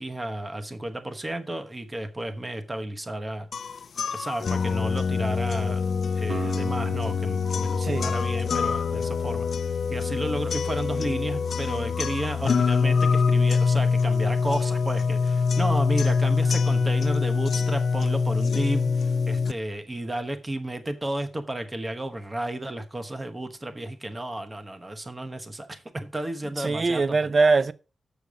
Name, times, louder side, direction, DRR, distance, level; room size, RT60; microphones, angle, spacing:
voice 1, 0.0-3.5 4.1-5.8 6.2-9.5 9.9-27.2, right 1 dB, 20° right, 1.0 m, -32 dB
sound 1, 3.5-19.5, left 5 dB, 65° left, 0.4 m, -24 dB
Acoustic guitar, 6.3-10.4, right 4 dB, 75° right, 1.9 m, -39 dB
voice 2, 7.8-8.1 26.6-27.7, right 3 dB, 40° right, 0.5 m, -22 dB
6.9 x 6.8 x 4.9 m
wide cardioid pair, 125°, 0 cm